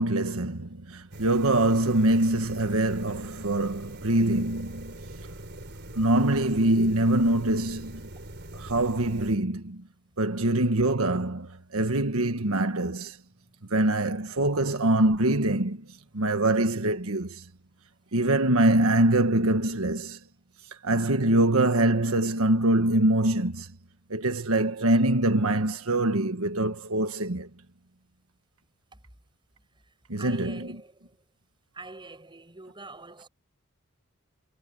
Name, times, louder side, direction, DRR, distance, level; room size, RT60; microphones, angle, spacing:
voice 1, 0.0-4.9 5.9-8.0 8.5-9.8 10.2-13.2 13.7-15.8 16.1-17.4 18.1-20.2 20.8-23.7 24.1-27.5 30.1-30.7, right 1 dB, 85° right, 1.5 m, -24 dB
sound 1, 1.1-9.4, right 1 dB, 55° right, 4.3 m, -43 dB
voice 2, 30.2-31.2 31.7-33.3, right 2 dB, 25° right, 6.7 m, -45 dB
head